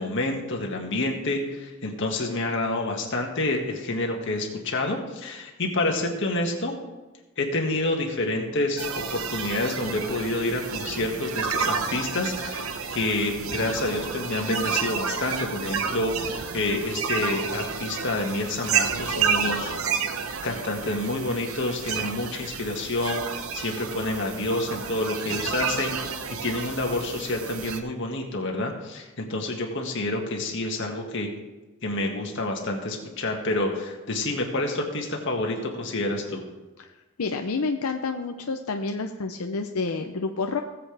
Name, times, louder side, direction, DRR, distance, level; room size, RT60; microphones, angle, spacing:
voice 1, 0.0-6.7 7.4-19.7 20.4-26.0 26.3-31.3 31.8-36.5, left 2 dB, 60° left, 1 dB, 1.9 m, -28 dB
sound 1, 8.8-27.8, right 6 dB, 75° right, 0.9 m, -30 dB
voice 2, 37.2-40.6, left 4 dB, 90° left, 5 dB, 0.7 m, -29 dB
18.5 x 7.9 x 3.4 m, 1.2 s
head